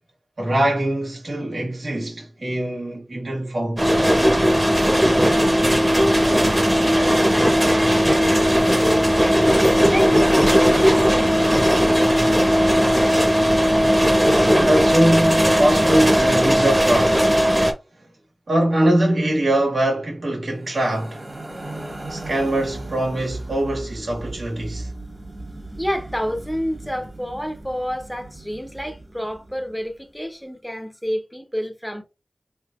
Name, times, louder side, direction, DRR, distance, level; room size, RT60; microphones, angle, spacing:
voice 1, 0.4-4.0 14.5-17.3 18.5-21.2 22.1-24.9, right 1 dB, 80° right, 1.8 m, -22 dB
sound 1, 3.8-17.7, equal, 20° right, 1.1 m, -17 dB
voice 2, 5.7-12.6 25.8-32.0, equal, 5° left, 0.9 m, -29 dB
sound 2, 20.6-29.9, right 2 dB, 40° right, 1.5 m, -37 dB
3.9 x 3.5 x 2.4 m
cardioid pair, 45°, 0 cm